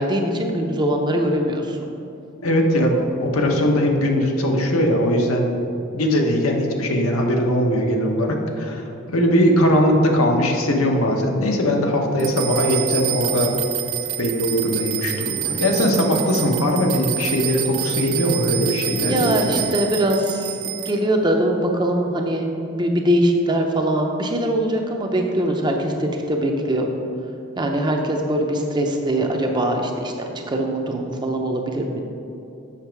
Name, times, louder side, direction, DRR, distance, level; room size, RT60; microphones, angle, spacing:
voice 1, 0.0-1.8 19.0-26.9 27.6-30.1 30.5-32.0, right 1 dB, 20° right, 2 dB, 0.6 m, -22 dB
voice 2, 2.4-5.5 5.9-8.9 9.1-13.5 14.2-19.6, equal, 85° left, 1 dB, 1.0 m, -20 dB
sound 1, 12.2-20.9, right 12 dB, 75° right, 0.6 m, -27 dB
7.3 x 6.0 x 4.6 m, 2.8 s
head